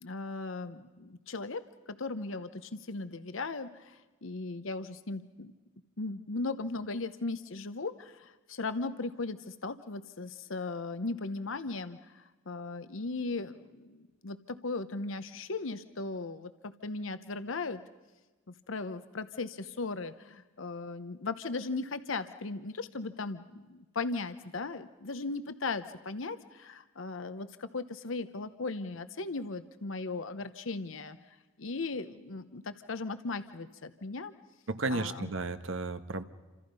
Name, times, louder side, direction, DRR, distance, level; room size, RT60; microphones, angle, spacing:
voice 1, 0.0-5.5 6.0-17.8 18.5-31.2 31.6-34.3 34.9-35.3, left 3 dB, 80° left, 11 dB, 0.9 m, -37 dB
voice 2, 34.7-36.2, right 3 dB, 80° right, 10 dB, 1.3 m, -33 dB
28.5 x 26.5 x 5.5 m, 1.2 s
head